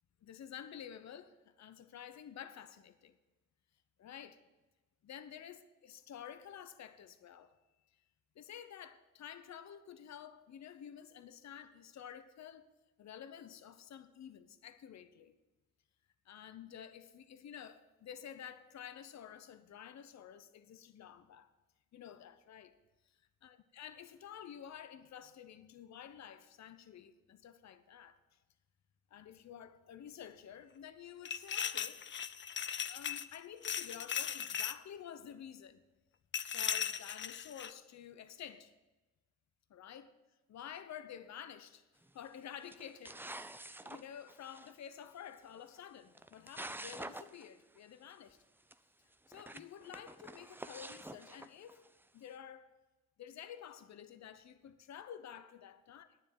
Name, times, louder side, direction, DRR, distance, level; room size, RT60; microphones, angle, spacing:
voice 1, 0.2-3.2 4.0-4.4 5.0-7.5 8.3-12.7 13.0-15.4 16.2-21.5 21.9-22.7 23.4-28.2 29.1-32.0 32.9-35.8 36.4-38.7 39.7-40.1 40.5-41.9 42.1-48.4 49.3-51.9 52.1-52.7 53.2-56.1, left 9 dB, 65° left, 0.8 m, -51 dB
sound 1, 31.2-33.4 33.6-34.8 36.3-37.7, left 8 dB, 40° left, 0.5 m, -38 dB
sound 2, 42.0-42.3 42.7-44.7 45.8-45.9 46.1-47.5 47.8-47.9 48.1-48.2 48.7-48.8 49.3-52.0, right 1 dB, 5° right, 0.5 m, -48 dB
9.6 x 7.5 x 7.9 m
cardioid pair, 65°, 30 cm